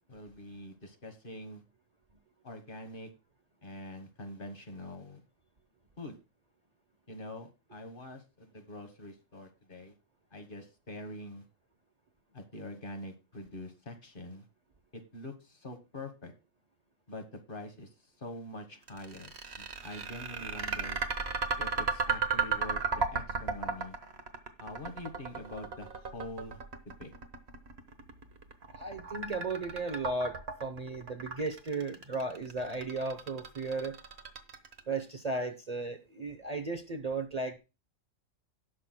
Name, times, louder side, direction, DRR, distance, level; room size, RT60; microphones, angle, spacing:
voice 1, 0.1-1.6 2.4-3.1 3.6-5.2 6.0-6.2 7.1-9.9 10.3-11.4 12.3-14.4 14.9-16.3 17.1-17.9 18.2-21.0 21.6-24.0 24.6-27.1, left 1 dB, 45° left, 1.5 m, -45 dB
sound 1, 18.9-35.0, right 5 dB, 55° right, 1.3 m, -34 dB
voice 2, 28.8-34.0 34.9-37.6, right 3 dB, 35° right, 0.8 m, -35 dB
17.5 x 6.0 x 2.2 m
omnidirectional pair, 1.3 m